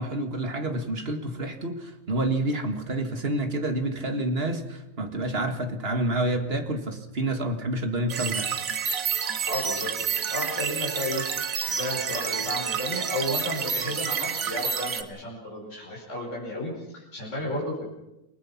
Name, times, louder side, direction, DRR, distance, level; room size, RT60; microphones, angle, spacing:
voice 1, 0.0-8.5, right 1 dB, 40° right, 6 dB, 2.2 m, -28 dB
sound 1, 8.1-15.0, right 6 dB, 70° right, 1.6 m, -29 dB
voice 2, 9.4-11.2 11.6-17.9, left 1 dB, 55° left, -4 dB, 5.8 m, -33 dB
28.0 x 20.0 x 5.9 m, 0.96 s
omnidirectional pair, 1.5 m